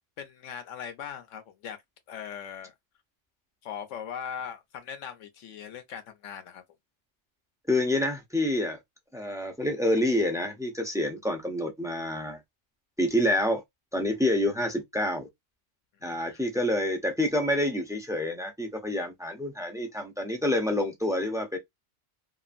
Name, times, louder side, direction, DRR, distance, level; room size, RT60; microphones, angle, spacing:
voice 1, 0.2-1.8 2.1-2.7 3.6-6.6 16.0-16.4, left 8 dB, 85° left, 1.1 m, -40 dB
voice 2, 7.7-8.8 9.1-12.4 13.0-13.6 13.9-15.3 16.0-21.6, left 1 dB, 5° right, 0.4 m, -27 dB
2.9 x 2.4 x 2.5 m
omnidirectional pair, 1.2 m